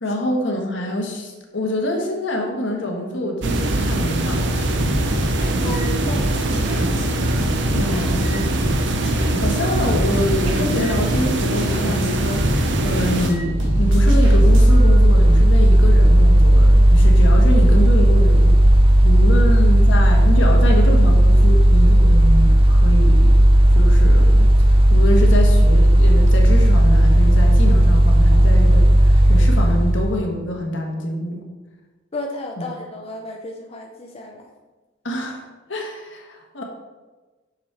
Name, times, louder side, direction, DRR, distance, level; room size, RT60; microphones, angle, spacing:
voice 1, 0.0-4.8 7.7-8.5 9.4-18.6 19.0-23.4 23.7-31.4 32.6-32.7 35.0-36.6, left 1 dB, 75° left, 1 dB, 1.4 m, -25 dB
sound 1, 3.4-13.3, right 1 dB, 65° right, 0.7 m, -22 dB
sound 2, 4.8-14.9, equal, 85° right, 1.9 m, -27 dB
voice 2, 5.5-7.0 7.4-7.9 32.1-34.5, left 2 dB, 30° left, 1 dB, 0.6 m, -34 dB
Mechanical fan, 13.4-30.2, right 1 dB, 30° right, 0.7 m, -13 dB
7.3 x 6.6 x 3.4 m, 1.2 s
head